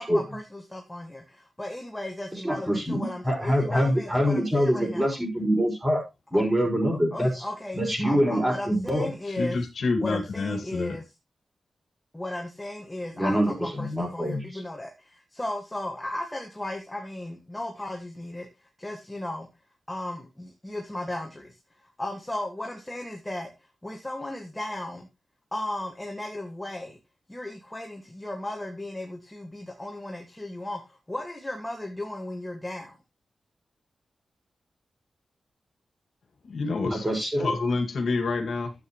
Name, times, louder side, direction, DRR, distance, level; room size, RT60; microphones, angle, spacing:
voice 1, 0.0-5.2 6.6-6.7 7.1-9.6 10.0-11.1 12.1-18.5 18.8-19.5 19.9-21.6 21.8-23.5 23.8-25.1 25.5-27.0 27.3-32.9, left 1 dB, 10° left, 2 dB, 1.9 m, -35 dB
voice 2, 2.4-6.0 6.3-7.4 7.7-9.1 13.2-14.6 36.8-37.6, equal, 10° right, 0 dB, 5.6 m, -25 dB
voice 3, 9.3-11.0 36.4-37.0 37.4-38.7, left 3 dB, 70° left, 6 dB, 2.2 m, -28 dB
12.5 x 8.5 x 3.1 m, 0.23 s
wide cardioid pair, 125°, 0 cm